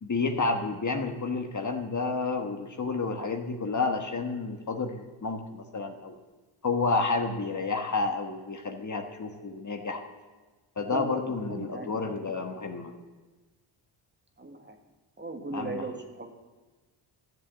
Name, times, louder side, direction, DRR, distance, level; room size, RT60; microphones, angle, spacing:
voice 1, 0.0-6.2 6.6-10.0 10.8-12.9 15.5-15.9, left 3 dB, 35° left, 4 dB, 1.5 m, -30 dB
voice 2, 10.9-11.9 14.4-14.8 15.2-16.3, right 2 dB, 20° right, 3 dB, 1.8 m, -37 dB
13.5 x 7.4 x 7.6 m, 1.3 s
cardioid pair, 75°, 48 cm